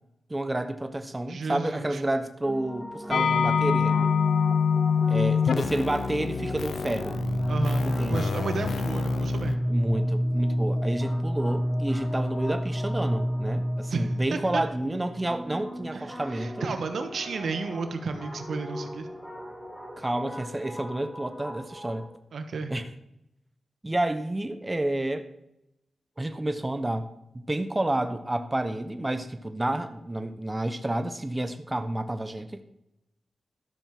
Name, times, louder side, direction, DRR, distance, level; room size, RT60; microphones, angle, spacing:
voice 1, 0.3-4.1 5.1-7.2 7.9-8.3 9.7-16.6 20.0-22.1 22.7-22.9 23.8-25.3 26.2-27.1 27.3-32.6, right 1 dB, 20° right, 9 dB, 0.8 m, -30 dB
voice 2, 1.3-2.0 7.5-9.6 13.9-14.6 15.9-19.1 22.3-22.8, right 4 dB, 75° right, 7 dB, 1.3 m, -33 dB
sound 1, 2.4-22.1, equal, 10° left, 4.5 m, -32 dB
sound 2, 3.1-9.6, left 6 dB, 70° left, 0.5 m, -26 dB
12.5 x 6.7 x 6.0 m, 0.86 s
cardioid pair, 65°, 0 cm